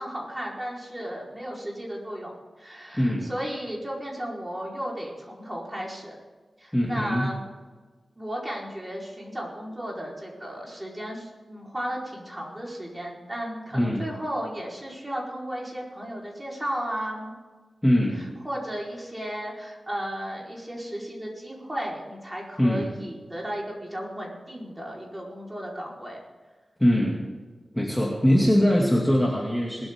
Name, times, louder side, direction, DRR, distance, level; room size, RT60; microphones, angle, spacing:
voice 1, 0.0-6.1 6.6-7.4 8.2-17.3 18.2-26.2, equal, 15° right, -3 dB, 4.5 m, -34 dB
voice 2, 3.0-3.3 6.7-7.3 13.7-14.1 17.8-18.3 22.6-22.9 26.8-27.2 27.7-29.9, equal, 5° left, -3 dB, 2.5 m, -22 dB
21.0 x 13.0 x 3.8 m, 1.4 s
wide cardioid pair, 100°, 0 cm